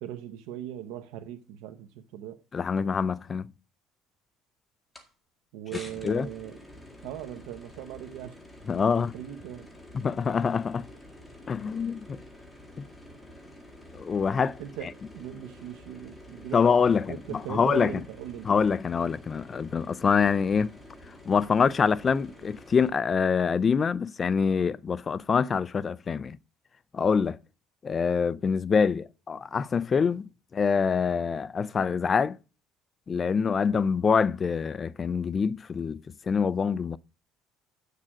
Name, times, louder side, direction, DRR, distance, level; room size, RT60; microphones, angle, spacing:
voice 1, 0.0-2.4 5.5-6.6 7.0-8.4 8.7-9.7 14.6-18.5, right 11 dB, 90° right, 0.9 m, -39 dB
voice 2, 2.5-3.5 6.0-6.3 8.7-9.1 9.9-10.9 11.5-12.2 12.8-12.9 13.9-14.9 16.5-17.9 18.5-20.8 21.3-26.4 26.9-27.4 27.8-32.4 33.1-36.0 36.3-37.0, left 6 dB, 25° left, 0.4 m, -25 dB
sound 1, 4.9-5.1 5.7-22.9, left 1 dB, 5° left, 1.9 m, -49 dB
8.5 x 6.6 x 6.1 m
cardioid pair, 160°, 0 cm